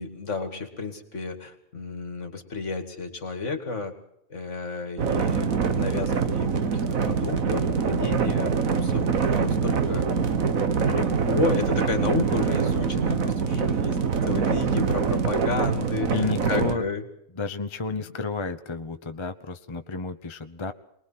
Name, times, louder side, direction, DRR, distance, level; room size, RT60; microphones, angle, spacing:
voice 1, 0.0-3.9 4.3-10.0 10.8-14.0 14.2-17.0, left 3 dB, 60° left, 7 dB, 2.8 m, -32 dB
sound 1, 5.0-16.8, right 5 dB, 85° right, 1.8 m, -24 dB
voice 2, 16.1-16.8 17.3-20.7, left 4 dB, 25° left, 8 dB, 0.9 m, -31 dB
24.0 x 20.5 x 5.8 m, 0.77 s
omnidirectional pair, 1.4 m